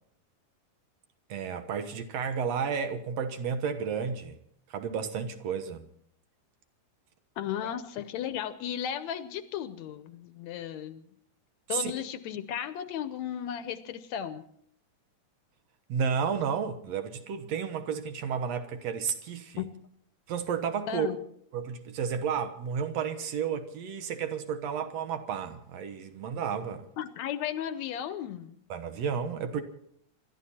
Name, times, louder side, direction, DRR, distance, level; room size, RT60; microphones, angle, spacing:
voice 1, 1.3-4.4 4.7-5.9 7.6-7.7 11.7-11.9 15.9-19.6 20.3-21.1 21.5-26.9 28.7-29.6, right 6 dB, 65° right, 2.2 m, -32 dB
voice 2, 7.4-11.1 11.7-14.4 19.6-19.7 20.9-21.2 27.0-28.6, left 9 dB, 75° left, 1.9 m, -35 dB
26.0 x 12.5 x 4.3 m
omnidirectional pair, 3.5 m